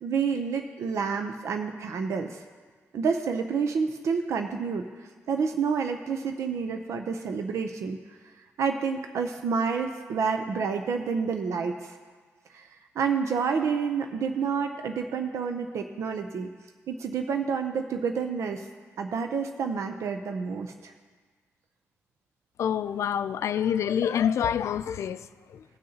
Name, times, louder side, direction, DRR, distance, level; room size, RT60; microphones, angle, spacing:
voice 1, 0.0-2.4 2.9-4.9 5.3-8.0 8.6-11.9 12.5-12.7 13.0-16.5 16.9-18.6 19.0-20.9, right 5 dB, 80° right, 0.6 m, -29 dB
voice 2, 22.6-25.6, left 8 dB, 75° left, 0.3 m, -27 dB
19.0 x 6.5 x 2.8 m
wide cardioid pair, 160°, 5 cm